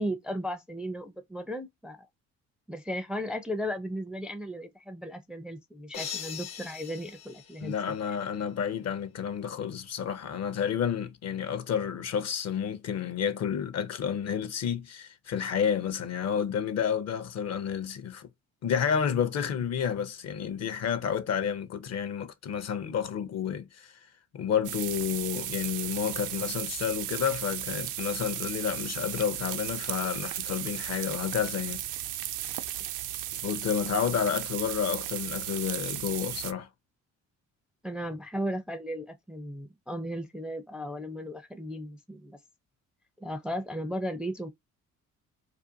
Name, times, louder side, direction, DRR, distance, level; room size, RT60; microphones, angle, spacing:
voice 1, 0.0-2.1 2.7-7.7 37.8-42.4 43.2-44.5, equal, ahead, 0.4 m, -35 dB
sound 1, 5.9-8.3, left 8 dB, 90° left, 0.8 m, -41 dB
voice 2, 7.6-18.3 18.6-23.9 24.3-31.8 33.4-36.7, left 8 dB, 50° left, 0.6 m, -30 dB
sound 2, 24.6-36.5, right 12 dB, 65° right, 0.4 m, -35 dB
2.6 x 2.2 x 2.6 m
supercardioid pair, 65°, 33 cm